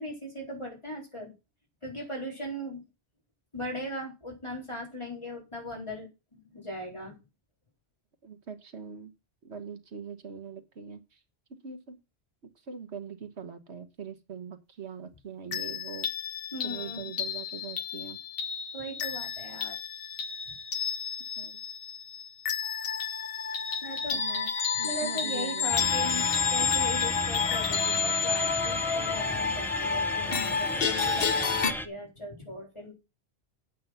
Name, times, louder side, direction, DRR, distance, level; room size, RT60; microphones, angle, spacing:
voice 1, 0.0-1.3 1.8-2.8 3.5-7.2 15.5-15.6 16.5-17.1 18.7-19.8 20.5-20.6 23.8-24.2 24.7-32.9, equal, 25° left, 4.1 m, -39 dB
voice 2, 8.2-9.1 9.4-11.2 11.6-12.0 12.7-16.1 16.6-18.2 21.4-21.6 24.1-24.5 24.8-26.0, right 6 dB, 85° right, 1.6 m, -42 dB
sound 1, 15.5-31.7, left 6 dB, 60° left, 1.1 m, -30 dB
sound 2, 25.7-31.9, equal, ahead, 0.7 m, -35 dB
8.8 x 8.0 x 5.7 m
omnidirectional pair, 1.1 m